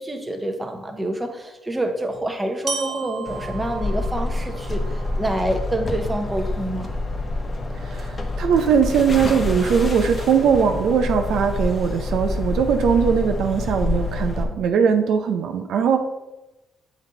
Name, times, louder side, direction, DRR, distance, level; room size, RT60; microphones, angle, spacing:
voice 1, 0.0-6.9, right 1 dB, 10° right, 4 dB, 0.9 m, -27 dB
Glockenspiel, 2.7-6.6, right 6 dB, 50° right, 0.8 m, -36 dB
sound 1, 3.3-14.4, left 2 dB, 30° left, 1.0 m, -27 dB
voice 2, 7.8-16.0, right 7 dB, 75° right, 5 dB, 0.5 m, -20 dB
7.2 x 4.0 x 3.9 m, 1.0 s
cardioid pair, 90°, 0 cm